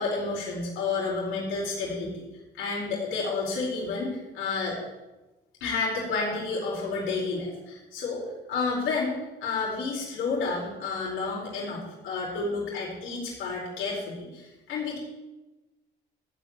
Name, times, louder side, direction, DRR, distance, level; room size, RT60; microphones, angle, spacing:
voice 1, 0.0-2.2 2.5-4.8 5.6-8.2 8.5-15.0, left 4 dB, 90° left, -5 dB, 4.5 m, -30 dB
13.5 x 5.5 x 8.7 m, 1.1 s
cardioid pair, 90°, 20 cm